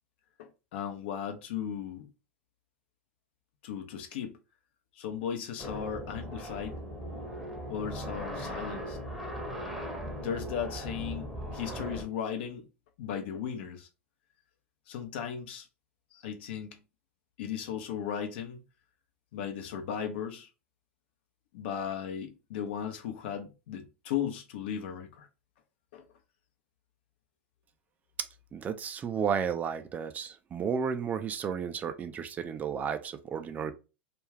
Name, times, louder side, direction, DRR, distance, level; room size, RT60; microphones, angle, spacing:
voice 1, 0.4-2.1 3.6-4.4 5.0-6.8 7.7-9.0 10.2-12.7 13.0-13.9 14.9-15.7 16.1-16.8 17.4-18.6 19.3-20.5 21.5-25.3 25.9-26.0, left 8 dB, 65° left, 0.7 m, -36 dB
sound 1, 5.6-12.0, equal, ahead, 0.8 m, -38 dB
voice 2, 28.5-33.7, right 7 dB, 25° right, 0.4 m, -33 dB
2.4 x 2.2 x 3.2 m
hypercardioid pair, 100°, 7 cm